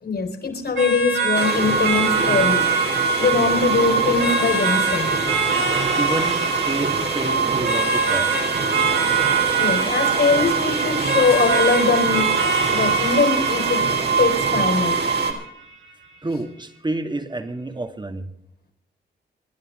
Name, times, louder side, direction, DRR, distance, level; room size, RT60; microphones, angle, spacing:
voice 1, 0.0-2.6 3.2-5.1 9.5-12.3 12.7-13.8 14.2-15.0, left 4 dB, 60° left, 5 dB, 4.8 m, -21 dB
sound 1, 0.8-15.7, right 5 dB, 80° right, 4.0 m, -25 dB
sound 2, 1.3-15.3, right 4 dB, 60° right, 3.6 m, -23 dB
voice 2, 2.7-3.0 6.0-8.4 16.2-18.3, right 2 dB, 20° right, 7 dB, 2.3 m, -30 dB
27.0 x 11.0 x 3.9 m, 0.76 s
cardioid pair, 70°, 20 cm